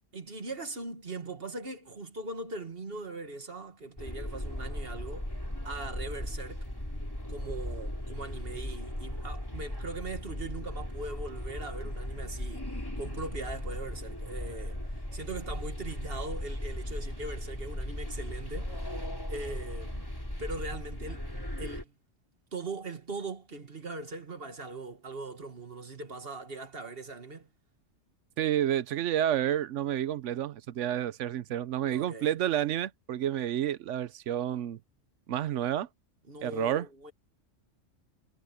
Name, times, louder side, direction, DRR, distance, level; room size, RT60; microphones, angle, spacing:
voice 1, 0.1-5.3 5.6-6.7 7.3-12.7 13.0-20.1 20.4-21.3 21.6-21.9 22.5-27.5 31.9-32.4 36.3-37.1, right 3 dB, 50° right, 2.1 m, -40 dB
sound 1, 4.0-21.8, left 1 dB, 15° left, 4.2 m, -37 dB
voice 2, 28.4-34.8 35.3-35.9 36.4-36.9, right 11 dB, 75° right, 1.0 m, -30 dB
omnidirectional pair, 1.3 m